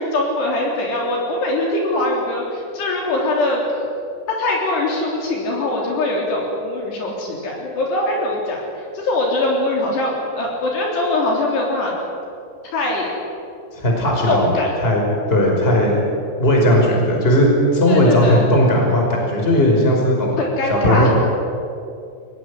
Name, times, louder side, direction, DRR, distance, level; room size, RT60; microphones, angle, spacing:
voice 1, 0.0-3.6 4.3-8.6 9.0-12.0 12.7-13.1 14.3-14.7 17.9-18.4 20.4-21.1, left 2 dB, 60° left, -1 dB, 5.4 m, -22 dB
voice 2, 13.7-14.5 14.8-15.0 15.3-16.0 16.4-20.3 20.6-21.2, equal, 10° left, 0 dB, 4.9 m, -16 dB
23.0 x 18.5 x 9.9 m, 2.5 s
omnidirectional pair, 5.6 m